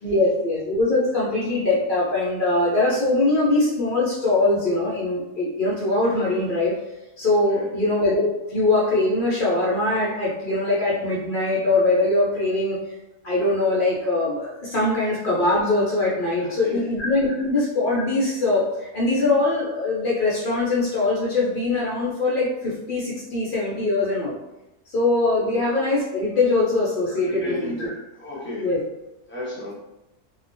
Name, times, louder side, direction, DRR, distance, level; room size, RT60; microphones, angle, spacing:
voice 1, 0.0-6.7 7.2-12.8 13.2-24.4 24.9-27.9 28.6-28.8, left 2 dB, 65° left, -6 dB, 0.5 m, -22 dB
voice 2, 16.4-16.9 25.4-25.6 27.2-28.7 29.3-29.7, left 2 dB, 10° left, -8 dB, 0.6 m, -33 dB
2.9 x 2.1 x 2.5 m, 0.95 s
omnidirectional pair, 1.6 m